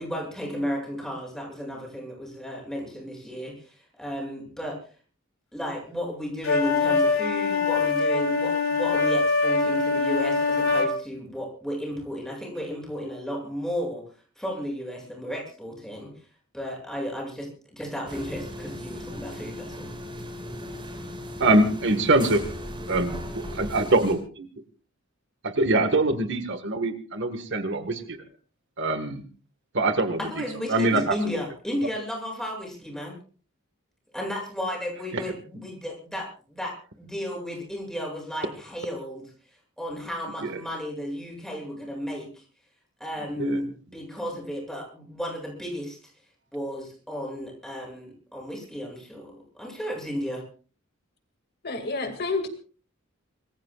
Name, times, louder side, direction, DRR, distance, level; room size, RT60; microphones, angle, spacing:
voice 1, 0.0-4.8 5.5-14.0 14.4-16.1 16.5-19.9 30.2-33.2 34.1-39.3 39.8-42.4 43.0-46.1 46.5-50.4, equal, ahead, 0 dB, 7.8 m, -33 dB
sound 1, 6.4-10.9, left 4 dB, 75° left, 3.8 m, -23 dB
sound 2, 18.1-24.2, equal, 25° right, 5.4 m, -37 dB
voice 2, 21.4-22.4 22.9-24.2 25.4-28.2 28.8-29.2 29.7-30.2 30.7-31.2 35.1-35.2 40.5-40.6 43.4-43.6, right 2 dB, 60° right, 8 dB, 1.7 m, -23 dB
voice 3, 51.6-52.5, left 3 dB, 50° left, 6 dB, 2.3 m, -29 dB
26.5 x 21.0 x 2.5 m, 0.39 s
head